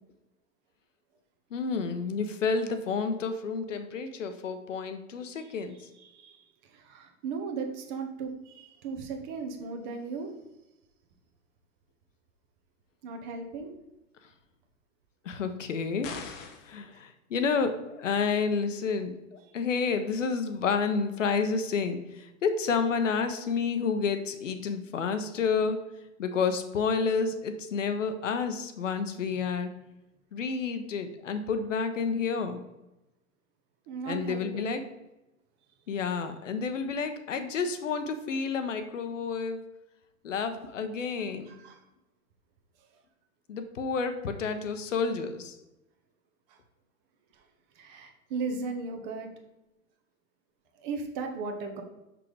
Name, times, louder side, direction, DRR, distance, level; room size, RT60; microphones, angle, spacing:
voice 1, 1.5-5.8 15.2-16.1 16.6-19.1 19.5-25.8 26.2-29.7 30.3-32.6 34.1-34.8 35.9-39.6 40.2-41.6 43.5-45.6, left 5 dB, 60° left, 8 dB, 0.9 m, -30 dB
voice 2, 6.0-10.3 13.0-13.7 16.9-17.0 19.4-19.6 33.9-34.8 41.2-41.8 46.5-46.6 47.3-47.4 47.7-49.3 50.7-51.8, right 4 dB, 35° right, 5 dB, 1.0 m, -37 dB
sound 1, 16.0-16.8, left 6 dB, 25° left, 0.7 m, -40 dB
6.0 x 5.9 x 3.3 m, 0.96 s
figure-of-eight pair, 100°, 42 cm